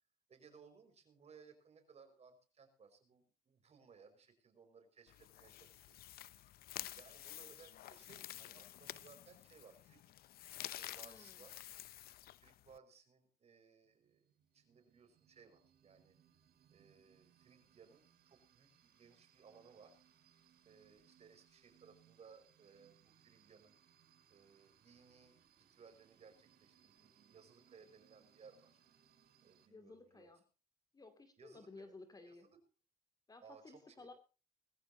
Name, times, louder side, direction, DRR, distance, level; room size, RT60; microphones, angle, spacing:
voice 1, 0.3-6.0 6.4-6.6 7.0-10.0 10.7-11.6 12.4-16.2 16.7-20.0 20.6-23.8 24.3-28.7 29.4-30.3 31.4-32.0 32.3-32.6 33.4-34.1, right 5 dB, 40° right, 7 dB, 5.4 m, -63 dB
sound 1, 5.1-12.8, left 14 dB, 65° left, 0.7 m, -50 dB
voice 2, 11.0-11.4 29.7-30.4 30.9-32.5 33.3-34.1, left 3 dB, 20° left, 8 dB, 2.5 m, -56 dB
sound 2, 13.8-29.7, right 9 dB, 65° right, 5.4 m, -70 dB
21.0 x 14.5 x 2.8 m, 0.34 s
cardioid pair, 110°, 17 cm